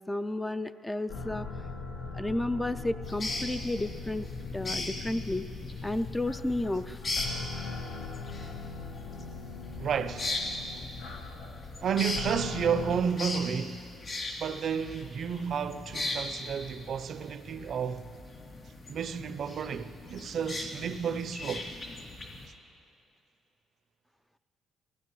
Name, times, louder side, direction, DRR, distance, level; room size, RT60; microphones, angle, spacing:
voice 1, 0.1-1.5 2.1-4.3 4.5-5.4 5.8-7.0, left 1 dB, 10° left, 0.3 m, -32 dB
sound 1, 1.1-13.0, left 4 dB, 75° left, 1.1 m, -40 dB
sound 2, 3.0-22.5, left 2 dB, 40° left, 2.9 m, -39 dB
voice 2, 9.8-10.3 11.8-13.9 14.4-18.1 18.9-21.7, right 7 dB, 60° right, 0.5 m, -31 dB
19.5 x 15.0 x 3.1 m
cardioid pair, 90°, 0 cm